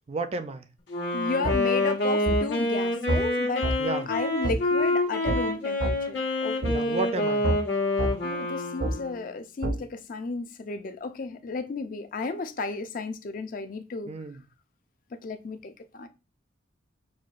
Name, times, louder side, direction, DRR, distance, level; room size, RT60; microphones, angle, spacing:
voice 1, 0.1-0.6 3.8-4.1 6.7-7.5 14.1-14.4, right 3 dB, 35° right, 0.3 m, -32 dB
Wind instrument woodwind instrument, 0.9-9.2, left 2 dB, 80° left, 1.3 m, -27 dB
voice 2, 1.1-3.7 4.1-7.0 8.2-14.1 15.2-16.1, left 3 dB, 45° left, 0.4 m, -33 dB
sound 1, 1.4-1.6 2.3-2.4 3.1-3.2 3.6-3.8 4.4-4.6 5.3-5.4 5.8-6.0 6.6-6.8 7.4-7.6 8.0-8.1 8.8-8.9 9.6-9.8, right 1 dB, 75° right, 0.7 m, -26 dB
6.3 x 2.2 x 2.4 m
head